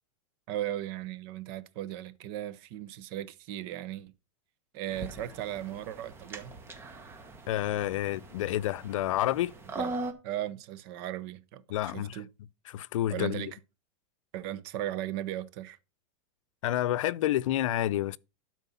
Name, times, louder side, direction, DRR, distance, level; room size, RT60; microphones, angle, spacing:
voice 1, 0.5-4.1 4.7-6.5 9.8-10.0 10.2-12.3 13.1-13.6 14.3-15.8, right 12 dB, 50° right, 0.9 m, -37 dB
sound 1, 4.9-10.1, right 2 dB, 15° right, 1.2 m, -41 dB
voice 2, 7.5-9.5 11.7-12.2 12.7-13.5 16.6-18.2, left 13 dB, 80° left, 0.5 m, -29 dB
12.0 x 4.6 x 5.6 m
supercardioid pair, 155°, 16 cm